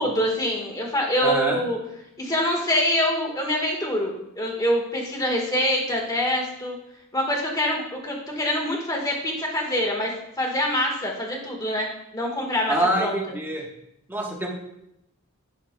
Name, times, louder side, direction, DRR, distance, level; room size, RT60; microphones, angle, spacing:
voice 1, 0.0-1.8 2.2-6.7 7.1-10.1 10.4-11.9 12.1-13.2, equal, 15° left, 0 dB, 1.4 m, -25 dB
voice 2, 1.2-1.6 12.7-13.6 14.1-14.5, right 1 dB, 10° right, -1 dB, 1.1 m, -25 dB
10.5 x 6.5 x 2.2 m, 0.82 s
head